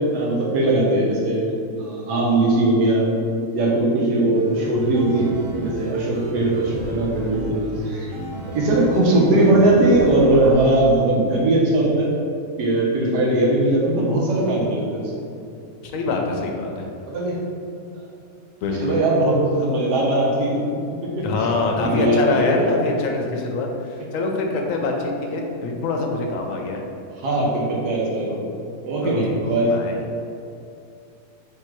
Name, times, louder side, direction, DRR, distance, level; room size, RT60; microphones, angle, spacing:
voice 1, 0.0-3.1 3.5-8.1 8.5-12.1 12.6-15.1 17.1-17.4 18.0-18.1 18.8-21.5 21.8-22.8 27.2-28.4 28.8-29.7, right 1 dB, 85° right, -2 dB, 1.4 m, -20 dB
sound 1, 4.3-10.7, right 1 dB, 65° right, 0.6 m, -34 dB
voice 2, 15.9-16.9 18.6-19.0 21.2-26.8 29.0-29.3 29.7-30.0, left 3 dB, 70° left, 1 dB, 0.9 m, -24 dB
3.6 x 2.8 x 4.5 m, 2.6 s
omnidirectional pair, 1.7 m